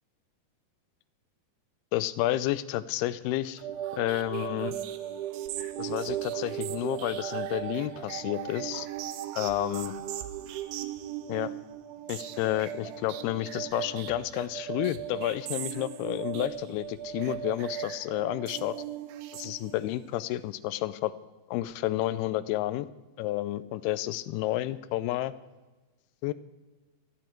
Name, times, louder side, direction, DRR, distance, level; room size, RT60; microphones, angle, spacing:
voice 1, 1.9-3.6 4.0-4.7 5.8-8.9 9.4-9.9 11.3-11.5 12.1-18.8 19.3-21.1 21.5-22.9 23.2-25.3 26.2-26.3, left 15 dB, 85° left, 15 dB, 2.6 m, -30 dB
sound 1, 3.6-20.0, right 11 dB, 75° right, 2.6 m, -37 dB
29.5 x 10.0 x 4.5 m, 1.2 s
omnidirectional pair, 4.5 m